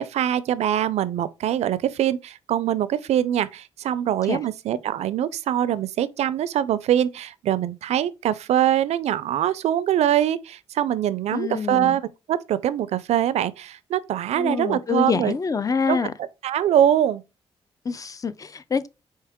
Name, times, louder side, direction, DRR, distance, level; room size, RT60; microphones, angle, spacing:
voice 1, 0.0-15.3 15.9-16.0 16.4-17.2, right 11 dB, 80° right, 0.4 m, -23 dB
voice 2, 11.3-12.0 14.4-16.1 17.9-18.9, left 5 dB, 30° left, 0.4 m, -26 dB
4.6 x 2.8 x 3.5 m
cardioid pair, 75°, 11 cm